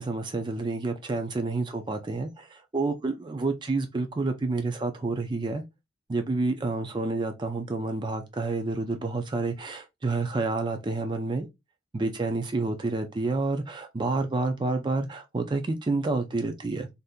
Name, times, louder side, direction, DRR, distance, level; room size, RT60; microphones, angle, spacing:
voice 1, 0.0-2.5 2.7-5.6 6.1-11.5 11.9-16.9, right 3 dB, 25° right, 0.4 m, -29 dB
2.7 x 2.4 x 3.6 m
head